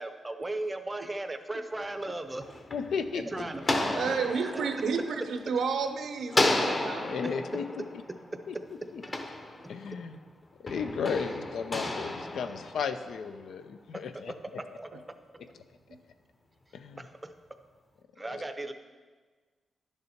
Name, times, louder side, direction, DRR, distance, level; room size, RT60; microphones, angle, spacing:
voice 1, 0.0-2.4 3.1-4.0 4.4-5.2 7.2-7.3 8.3-8.4 12.3-12.6 14.6-14.9 17.0-17.3 18.2-18.7, right 2 dB, 15° right, 9 dB, 0.6 m, -37 dB
sound 1, 2.1-5.8 6.3-10.1 10.7-13.3, left 2 dB, 30° left, 0.9 m, -33 dB
voice 2, 2.7-3.2 7.0-8.0 8.5-8.6 8.9-9.0 9.7-10.1 10.6-14.3 16.7-17.0 18.3-18.4, left 6 dB, 75° left, 9 dB, 0.6 m, -34 dB
voice 3, 3.9-7.1 15.9-16.0, right 5 dB, 75° right, 8 dB, 0.8 m, -31 dB
10.5 x 6.7 x 4.4 m, 1.4 s
cardioid pair, 115°, 0 cm